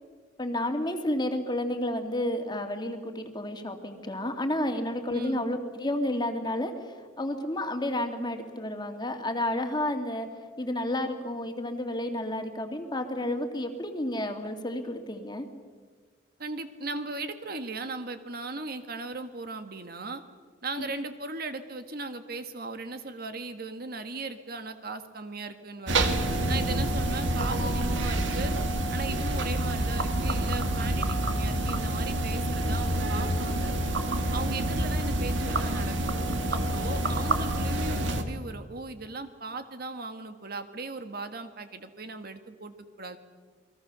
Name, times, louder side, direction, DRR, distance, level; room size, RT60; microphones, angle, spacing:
voice 1, 0.4-10.3 10.6-15.5, left 1 dB, 25° left, 5 dB, 2.3 m, -31 dB
voice 2, 5.1-5.4 16.4-20.2 20.6-26.1 26.5-28.5 28.9-33.7 34.3-36.1 36.5-43.2, right 3 dB, 55° right, 8 dB, 1.7 m, -37 dB
sound 1, 25.9-38.2, right 1 dB, 85° right, 2.1 m, -27 dB
29.0 x 21.5 x 6.9 m, 1.5 s
head